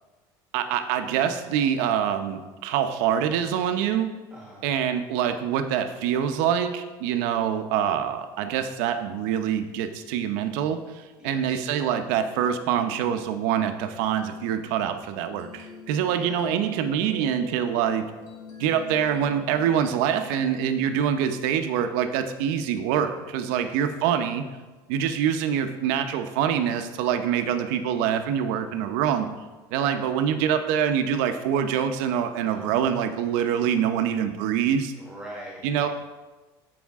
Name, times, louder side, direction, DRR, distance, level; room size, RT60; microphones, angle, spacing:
voice 1, 0.5-4.1 4.6-18.0 18.6-24.5 24.9-29.3 29.7-34.9 35.6-35.9, right 9 dB, 75° right, 7 dB, 0.8 m, -25 dB
voice 2, 4.3-4.6 11.2-11.6 16.1-16.5 23.5-23.8 27.5-27.8 32.4-32.8 35.0-35.9, right 1 dB, 10° right, -4 dB, 1.5 m, -44 dB
sound 1, 14.2-20.6, left 4 dB, 50° left, 2.2 m, -44 dB
13.5 x 5.1 x 3.6 m, 1.2 s
cardioid pair, 160°, 10 cm